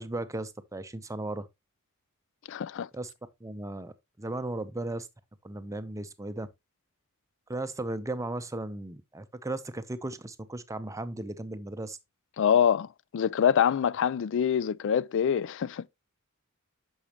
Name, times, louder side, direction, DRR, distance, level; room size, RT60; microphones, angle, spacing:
voice 1, 0.0-1.5 2.9-3.1 3.4-5.1 5.4-6.5 7.5-12.0, right 2 dB, 15° right, 0.6 m, -36 dB
voice 2, 2.5-2.9 12.4-15.9, left 8 dB, 55° left, 0.3 m, -25 dB
8.5 x 6.3 x 2.9 m
head